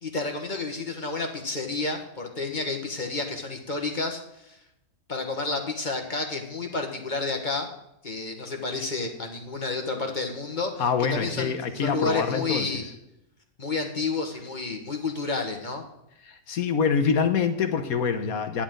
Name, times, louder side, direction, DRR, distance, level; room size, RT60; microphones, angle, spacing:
voice 1, 0.0-4.6 5.1-7.7 8.0-10.8 11.1-12.8 13.6-15.9, left 3 dB, 35° left, 3 dB, 1.5 m, -30 dB
voice 2, 10.8-12.9 16.2-18.6, left 6 dB, 75° left, 7 dB, 1.5 m, -25 dB
12.0 x 10.5 x 3.9 m, 0.85 s
omnidirectional pair, 1.5 m